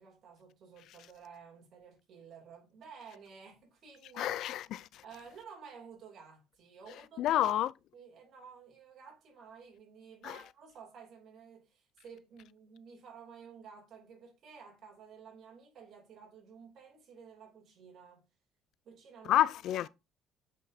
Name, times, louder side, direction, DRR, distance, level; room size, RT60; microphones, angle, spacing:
voice 1, 0.0-4.4 5.0-7.6 7.9-18.2 18.8-19.4 19.8-19.9, right 6 dB, 55° right, 3.0 m, -52 dB
voice 2, 4.2-5.0 7.2-7.7 10.2-10.3 19.3-19.9, left 13 dB, 70° left, 0.3 m, -29 dB
8.2 x 5.1 x 2.7 m
cardioid pair, 105°, 0 cm